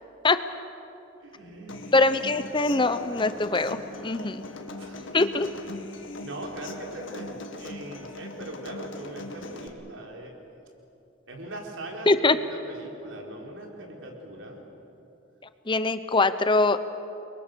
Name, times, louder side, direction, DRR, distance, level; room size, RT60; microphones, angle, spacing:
voice 1, 1.2-2.0 4.8-5.2 5.9-10.3 11.3-14.6, right 1 dB, 75° right, 0 dB, 4.4 m, -41 dB
Human voice / Acoustic guitar, 1.7-9.7, left 2 dB, 75° left, 2.1 m, -40 dB
voice 2, 1.9-4.4 5.1-5.5 12.1-12.4 15.7-16.8, left 3 dB, 25° left, 11 dB, 0.7 m, -22 dB
30.0 x 23.0 x 6.8 m, 2.8 s
head